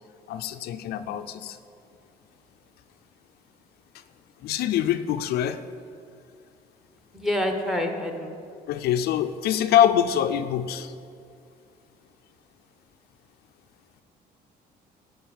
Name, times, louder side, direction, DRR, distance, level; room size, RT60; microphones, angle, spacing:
voice 1, 0.3-1.6 4.4-5.6 8.7-10.9, left 10 dB, 70° left, 9 dB, 0.5 m, -24 dB
voice 2, 7.1-8.3, left 1 dB, ahead, 4 dB, 1.1 m, -27 dB
11.5 x 5.4 x 7.1 m, 2.4 s
cardioid pair, 110°, 17 cm